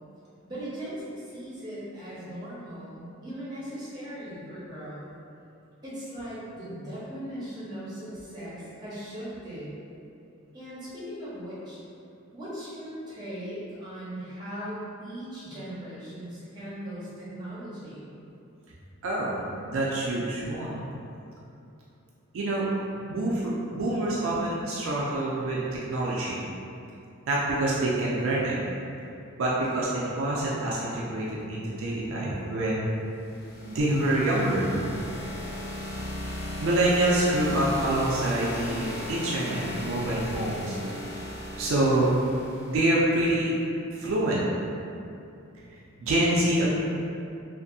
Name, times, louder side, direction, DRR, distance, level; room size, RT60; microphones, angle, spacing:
voice 1, 0.4-5.0 5.8-9.7 10.5-11.8 12.3-18.1, equal, 20° right, -10 dB, 0.7 m, -39 dB
voice 2, 19.0-20.9 22.3-22.7 23.1-26.5 27.3-28.6 29.4-32.9 33.6-34.7 36.6-40.7 41.6-42.2 42.7-43.5 43.9-44.4 46.0-46.7, right 1 dB, 65° right, -6 dB, 0.4 m, -26 dB
sound 1, 33.2-43.0, left 1 dB, 45° left, 0.4 m, -37 dB
2.6 x 2.4 x 2.6 m, 2.6 s
head